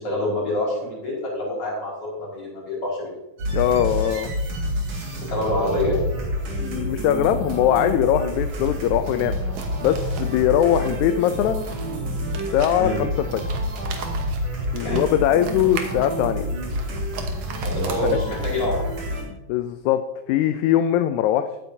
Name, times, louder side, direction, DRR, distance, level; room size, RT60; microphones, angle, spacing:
voice 1, 0.0-3.1 5.1-6.0 12.8-13.0 14.8-15.1 17.6-18.9, left 1 dB, 50° left, -7 dB, 5.5 m, -26 dB
sound 1, 3.4-19.2, equal, 60° right, 3.3 m, -28 dB
voice 2, 3.5-4.3 6.6-9.4 9.8-11.6 12.5-13.4 14.7-16.5 19.3-20.0 20.3-21.5, left 11 dB, 85° left, 9 dB, 1.9 m, -21 dB
sound 2, 8.3-18.9, right 5 dB, 85° right, 2.6 m, -39 dB
16.0 x 9.0 x 2.7 m, 0.95 s
omnidirectional pair, 3.4 m